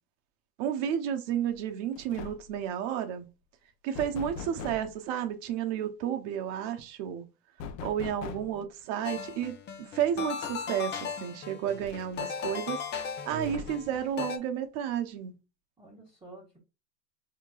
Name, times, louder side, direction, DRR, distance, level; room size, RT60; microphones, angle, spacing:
voice 1, 0.6-3.3 3.8-7.2 7.8-12.8 13.2-15.3, right 9 dB, 50° right, 0.9 m, -32 dB
sound 1, 1.5-1.7 2.0-2.6 3.9-5.0 7.6-8.6 10.2-10.3 10.7-10.8 11.8-12.4 13.4-14.0, left 5 dB, 55° left, 0.8 m, -42 dB
voice 2, 8.2-8.6 13.3-13.8 15.8-16.6, right 5 dB, 10° right, 1.6 m, -45 dB
sound 2, 9.0-14.4, left 6 dB, 20° left, 0.6 m, -37 dB
4.4 x 2.9 x 2.4 m
hypercardioid pair, 115°, 48 cm